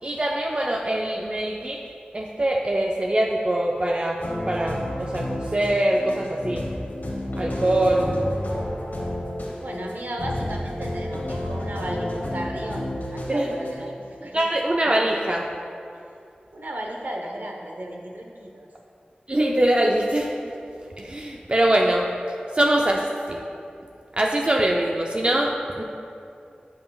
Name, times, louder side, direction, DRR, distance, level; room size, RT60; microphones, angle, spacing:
voice 1, 0.0-1.8 2.1-6.6 7.4-8.2 13.3-13.5 14.2-15.5 19.3-20.5 21.0-22.2 22.5-23.4 24.2-25.8, right 1 dB, 35° right, 0 dB, 0.5 m, -23 dB
sound 1, 4.2-13.7, left 1 dB, 75° left, 1.3 m, -31 dB
voice 2, 9.6-14.5 14.8-14.9 15.9-16.1 16.5-18.7 21.0-21.1 21.4-21.5, right 1 dB, 70° right, 1 dB, 0.9 m, -35 dB
10.5 x 5.7 x 2.3 m, 2.5 s
wide cardioid pair, 45°, 3 cm